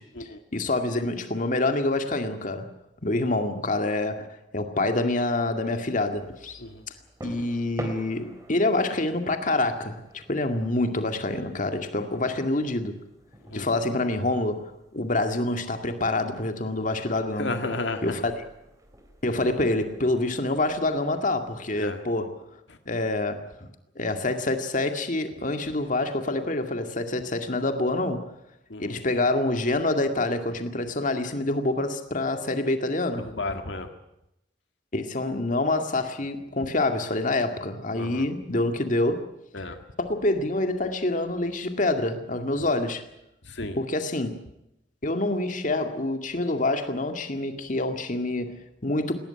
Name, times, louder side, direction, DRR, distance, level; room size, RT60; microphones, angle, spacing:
voice 1, 0.0-2.7 3.0-4.3 4.5-6.6 7.2-13.0 13.5-17.6 18.0-18.4 19.2-22.4 22.9-23.7 24.0-28.3 28.8-33.3 34.9-39.3 40.0-43.0 43.8-44.4 45.0-49.1, left 2 dB, 45° left, 2.1 m, -26 dB
sound 1, 6.1-22.0, right 1 dB, 20° right, 3.3 m, -47 dB
voice 2, 17.4-18.0 21.8-22.0 28.7-29.0 33.4-33.9 38.0-38.3 39.5-39.8 43.5-43.8, left 2 dB, 75° left, 1.8 m, -32 dB
19.5 x 17.5 x 9.9 m
head